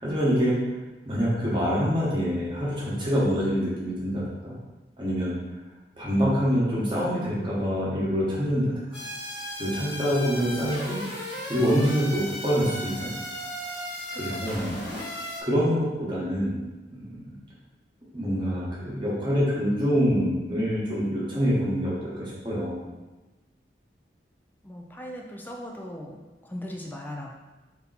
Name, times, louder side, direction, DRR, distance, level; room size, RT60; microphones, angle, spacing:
voice 1, 0.0-0.5 1.0-4.5 5.0-5.3 6.0-8.7 9.6-11.0 11.5-13.2 14.2-14.7 15.4-16.6 16.9-17.2 18.1-22.8, equal, 25° right, -7 dB, 1.2 m, -25 dB
sound 1, 8.9-15.4, equal, 70° left, 1.3 m, -36 dB
voice 2, 14.1-14.4 24.6-27.3, left 1 dB, 10° left, 0 dB, 0.3 m, -39 dB
3.6 x 2.8 x 4.0 m, 1.1 s
head